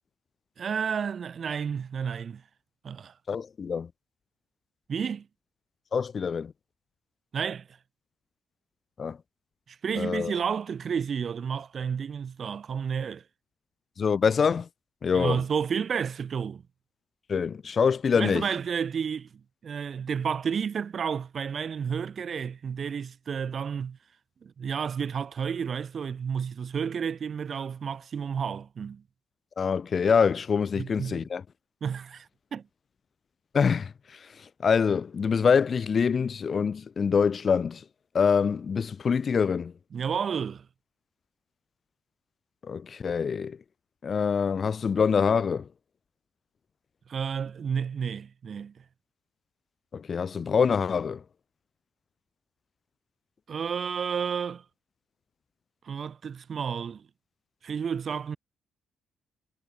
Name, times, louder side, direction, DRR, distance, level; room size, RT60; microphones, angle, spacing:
voice 1, 0.6-2.4 2.8-3.1 4.9-5.3 7.3-7.7 9.7-13.2 15.1-16.6 18.2-19.3 19.6-24.0 24.4-29.0 30.8-31.2 31.8-32.6 39.9-40.7 47.1-48.8 53.5-54.6 55.8-57.1 57.6-58.4, right 7 dB, 50° right, 0.5 m, -31 dB
voice 2, 3.3-3.9 5.9-6.5 9.0-9.2 9.9-10.3 14.0-14.7 15.0-15.4 17.3-18.5 29.6-31.4 33.5-37.8 38.1-39.7 42.6-43.6 44.0-45.7 49.9-51.2, left 6 dB, 45° left, 0.3 m, -25 dB
cardioid pair, 105°, 0 cm